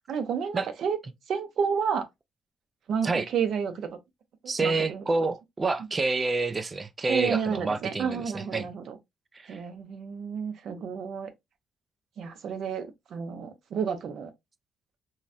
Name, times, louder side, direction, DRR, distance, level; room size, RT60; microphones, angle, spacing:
voice 1, 0.1-1.0 1.3-2.1 2.9-3.9 4.6-5.0 7.1-9.0 9.5-11.3 12.2-14.3, right 6 dB, 70° right, 0.6 m, -30 dB
voice 2, 4.5-8.7 9.3-9.6, right 3 dB, 30° right, 0.4 m, -28 dB
3.9 x 2.1 x 2.4 m
cardioid pair, 90°, 0 cm